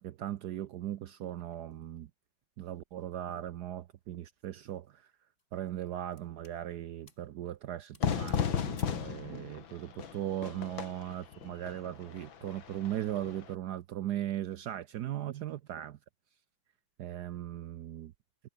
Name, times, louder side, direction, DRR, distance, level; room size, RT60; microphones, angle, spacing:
voice 1, 0.0-2.1 2.6-5.0 5.5-16.0 17.0-18.1, right 12 dB, 65° right, 1.1 m, -38 dB
sound 1, 4.4-4.7 5.4-6.6 7.1-7.3 7.6-7.7 7.9-9.1, left 3 dB, 35° left, 4.3 m, -59 dB
Fire / Fireworks, 8.0-13.5, left 8 dB, 80° left, 2.5 m, -35 dB
omnidirectional pair, 2.1 m